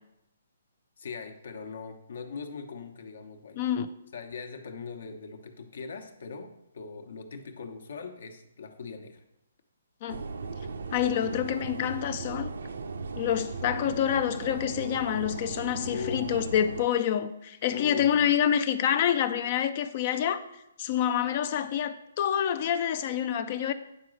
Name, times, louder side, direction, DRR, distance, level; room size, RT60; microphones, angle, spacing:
voice 1, 1.0-3.7 4.1-9.2 15.8-16.5 17.7-18.3, left 5 dB, 70° left, 1.0 m, -40 dB
voice 2, 3.6-3.9 10.0-10.2 10.9-12.5 13.2-20.4 20.8-23.7, left 9 dB, 35° left, 0.4 m, -27 dB
sound 1, 10.1-16.8, right 4 dB, 80° right, 0.7 m, -37 dB
9.2 x 3.8 x 6.4 m
hypercardioid pair, 160°, 0 cm